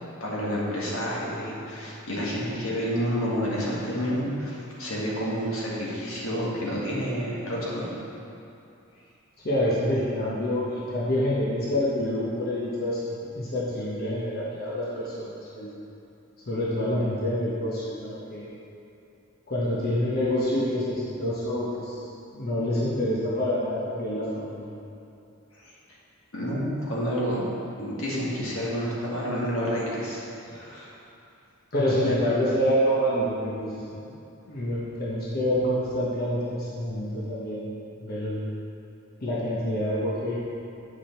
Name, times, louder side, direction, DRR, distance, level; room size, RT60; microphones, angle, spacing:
voice 1, 0.2-7.9 25.5-25.6 26.3-27.5 27.8-30.9 32.0-32.1, equal, 80° left, -6 dB, 1.8 m, -29 dB
voice 2, 9.4-15.7 16.5-18.5 19.5-22.0 22.3-24.7 31.7-34.0 34.5-37.6 38.0-38.4 39.2-40.4, equal, 50° left, -7 dB, 1.1 m, -27 dB
8.6 x 4.9 x 4.5 m, 2.7 s
head